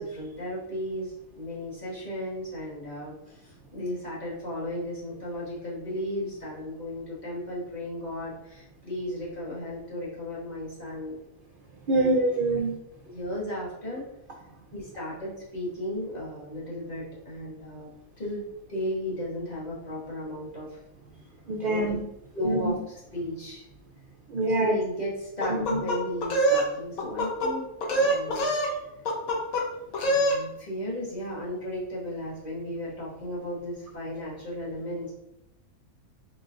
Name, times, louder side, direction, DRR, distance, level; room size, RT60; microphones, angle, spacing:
voice 1, 0.0-11.1 11.9-12.1 12.5-12.6 13.0-14.1 14.7-17.9 18.2-20.8 21.6-21.8 22.3-22.7 23.1-23.7 24.6-28.5 30.0-35.1, left 1 dB, 30° left, -7 dB, 1.4 m, -35 dB
voice 2, 11.9-12.7 21.5-22.0 22.4-22.8 24.3-24.8 25.5-25.8, right 2 dB, 70° right, 1 dB, 0.5 m, -25 dB
sound 1, 25.4-26.7 27.0-27.5 27.8-28.7 29.1-29.6 29.9-30.4, right 1 dB, 75° left, 1.3 m, -24 dB
3.9 x 3.8 x 2.5 m, 0.82 s
omnidirectional pair, 1.5 m